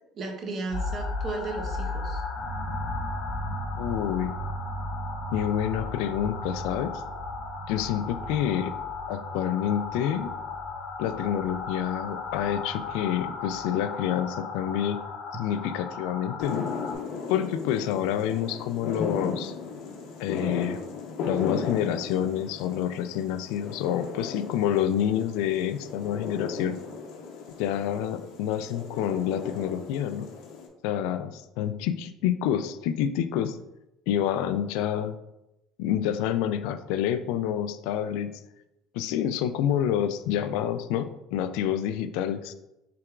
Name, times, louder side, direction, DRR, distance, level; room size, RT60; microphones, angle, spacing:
voice 1, 0.1-2.2, right 3 dB, 30° right, 3 dB, 0.7 m, -34 dB
sound 1, 0.7-16.9, left 2 dB, 40° left, 0.9 m, -35 dB
voice 2, 3.8-4.4 5.3-6.9 7.7-8.7 9.1-10.3 11.0-15.0 15.3-16.6 17.3-19.5 20.2-20.8 21.3-26.8 27.6-30.3 30.8-33.6 34.1-35.2 35.8-38.3 38.9-42.5, left 10 dB, 85° left, 11 dB, 0.3 m, -28 dB
sound 2, 16.4-30.7, left 5 dB, 65° left, 0.8 m, -36 dB
5.9 x 3.4 x 2.4 m, 0.89 s
cardioid pair, 170°, 0 cm